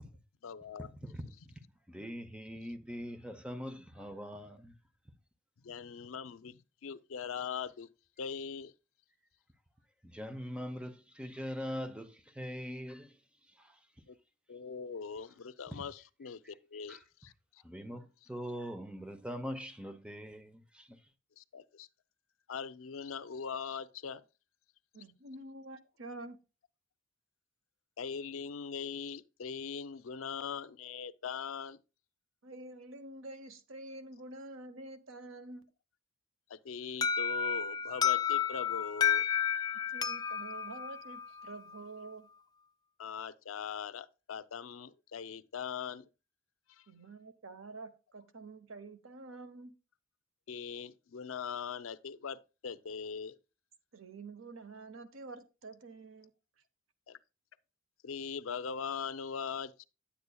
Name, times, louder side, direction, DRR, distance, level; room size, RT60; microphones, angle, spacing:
voice 1, 0.4-0.9 5.6-7.9 8.2-8.7 14.1-14.2 14.5-17.3 21.4-21.9 22.5-24.2 28.0-31.8 36.5-39.2 43.0-46.1 46.7-46.8 50.5-53.4 57.1-57.2 58.0-59.9, left 6 dB, 85° left, 0.5 m, -41 dB
voice 2, 1.9-4.7 10.1-13.1 16.9-17.0 17.6-20.9, equal, 5° right, 0.7 m, -42 dB
voice 3, 24.9-26.4 32.4-35.7 39.9-42.3 46.9-49.8 53.9-56.3, right 2 dB, 85° right, 0.9 m, -48 dB
Alarm, 37.0-41.8, left 8 dB, 20° left, 0.3 m, -32 dB
10.0 x 8.2 x 2.3 m
head